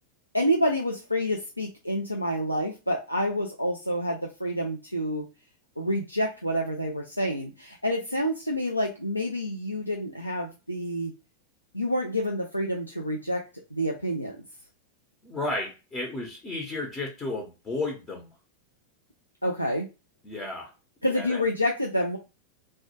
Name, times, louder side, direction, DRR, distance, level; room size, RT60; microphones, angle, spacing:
voice 1, 0.3-5.2 5.8-11.1 11.7-13.4 13.7-14.4 19.4-19.9 21.0-22.2, equal, 85° left, 0 dB, 0.3 m, -28 dB
voice 2, 15.2-18.3 20.2-20.7 21.1-21.4, left 2 dB, 20° left, 0 dB, 0.6 m, -33 dB
2.1 x 2.1 x 2.8 m, 0.29 s
figure-of-eight pair, 90°, 0 cm